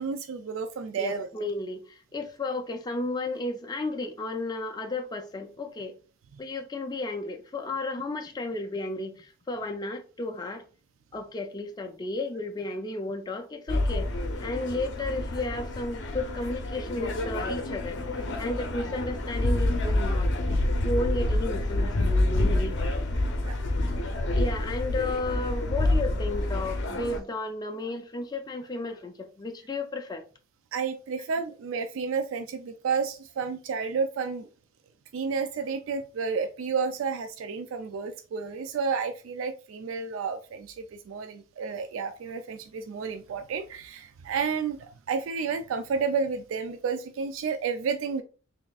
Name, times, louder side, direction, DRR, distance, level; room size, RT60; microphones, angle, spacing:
voice 1, 0.0-1.3 20.0-20.1 23.4-23.6 30.7-34.5 35.1-48.2, right 5 dB, 80° right, 0.4 m, -31 dB
voice 2, 1.0-5.9 6.4-10.6 11.1-14.1 14.4-20.4 20.8-22.8 24.3-30.2, left 2 dB, 20° left, 0.4 m, -33 dB
sound 1, 13.7-27.2, left 1 dB, 60° left, 0.7 m, -28 dB
3.9 x 3.5 x 2.3 m
head